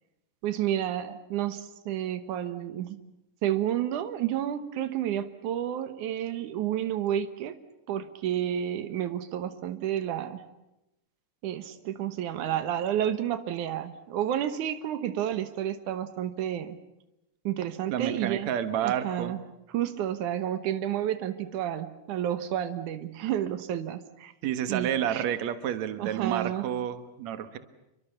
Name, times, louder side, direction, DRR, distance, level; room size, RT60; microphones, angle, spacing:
voice 1, 0.4-3.0 3.4-7.6 7.9-10.4 11.4-16.8 17.4-18.5 18.8-19.4 19.7-24.3 24.7-25.2 26.0-26.7, right 11 dB, 85° right, 11 dB, 2.7 m, -30 dB
voice 2, 17.9-19.3 24.4-27.6, right 10 dB, 70° right, 11 dB, 2.7 m, -30 dB
29.5 x 23.5 x 7.1 m, 0.91 s
omnidirectional pair, 3.4 m